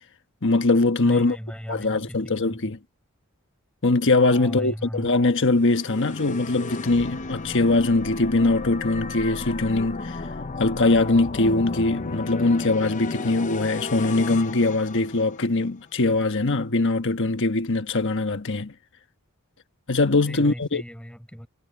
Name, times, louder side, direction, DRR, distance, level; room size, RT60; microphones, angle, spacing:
voice 1, 0.4-1.4 1.7-2.8 3.8-10.2 10.6-18.7 19.9-20.8, left 2 dB, 55° left, 1.3 m, -22 dB
voice 2, 1.0-2.7 4.3-5.1 20.2-21.5, equal, 5° left, 7.8 m, -37 dB
sound 1, 5.5-15.7, left 3 dB, 35° left, 0.7 m, -34 dB
head